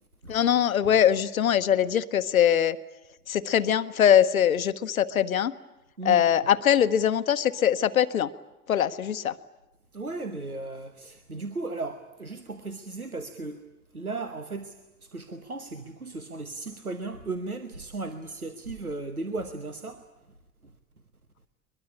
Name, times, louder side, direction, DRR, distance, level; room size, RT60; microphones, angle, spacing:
voice 1, 0.3-2.8 3.3-5.5 6.0-8.3 8.7-9.4, left 9 dB, 75° left, 14 dB, 1.0 m, -22 dB
voice 2, 9.9-13.6 13.9-20.0 20.6-20.7, right 3 dB, 90° right, 9 dB, 1.2 m, -36 dB
22.5 x 22.0 x 9.9 m, 0.98 s
figure-of-eight pair, 75°, 42 cm